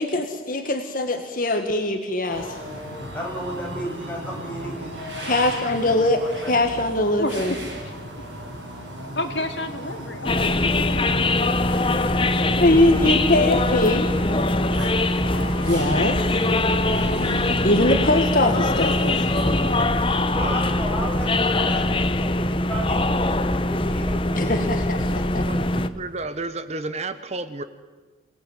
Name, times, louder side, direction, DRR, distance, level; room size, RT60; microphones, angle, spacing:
voice 1, 0.0-2.6 5.2-7.5 12.6-14.1 15.6-16.4 17.6-19.4 24.3-25.4, left 1 dB, 50° left, 5 dB, 1.8 m, -22 dB
sound 1, 2.3-19.8, right 1 dB, 75° right, 7.4 m, -36 dB
voice 2, 3.1-5.0 6.2-6.5 10.2-10.4 20.3-24.7, equal, 10° left, -3 dB, 6.8 m, -34 dB
voice 3, 7.2-7.9 9.1-11.1, left 2 dB, 75° left, 5 dB, 2.6 m, -31 dB
sound 2, 10.2-25.9, left 2 dB, 30° left, 0.9 m, -22 dB
voice 4, 25.4-27.6, right 2 dB, 35° right, 11 dB, 1.0 m, -32 dB
28.0 x 18.5 x 9.1 m, 1.4 s
head